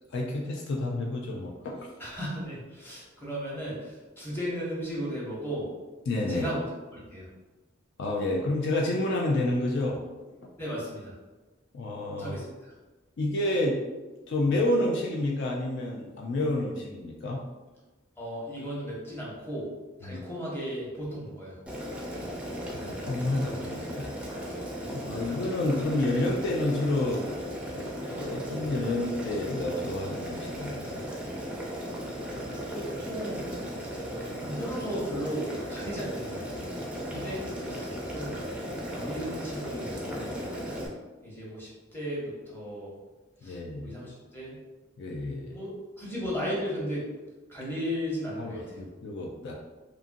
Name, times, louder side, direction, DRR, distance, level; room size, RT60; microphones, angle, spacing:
voice 1, 0.1-1.9 6.1-6.5 8.0-10.0 10.4-10.5 11.7-12.3 13.2-13.8 14.3-17.4 20.0-20.2 22.7-24.3 24.9-27.3 27.8-31.0 37.1-37.3 37.7-37.8 43.4-44.0 45.0-45.6 48.4-49.5, left 1 dB, 60° left, -1 dB, 0.4 m, -29 dB
voice 2, 2.0-5.7 6.3-6.7 6.9-7.3 10.6-11.1 12.2-12.7 18.2-19.7 20.0-21.6 24.8-25.0 32.2-33.5 33.9-36.6 37.1-38.4 38.9-40.5 41.2-42.9 43.4-44.6 45.5-45.7 46.0-47.1 47.5-48.8, equal, 10° left, -6 dB, 0.8 m, -36 dB
Boiling, 21.7-40.9, equal, 5° right, 0.4 m, -36 dB
2.8 x 2.5 x 2.5 m, 1.2 s
head